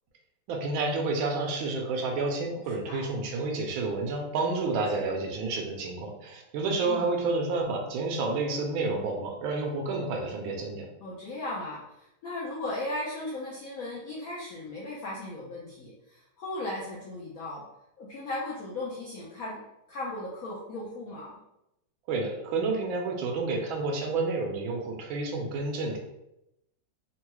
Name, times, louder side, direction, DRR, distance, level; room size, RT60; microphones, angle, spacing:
voice 1, 0.5-10.9 22.1-26.0, right 3 dB, 85° right, 1 dB, 1.5 m, -30 dB
voice 2, 2.7-3.1 4.5-5.0 6.9-7.1 11.0-17.6 18.0-19.6 19.9-21.4, left 2 dB, 75° left, -5 dB, 0.8 m, -37 dB
3.7 x 2.2 x 3.0 m, 0.86 s
omnidirectional pair, 2.2 m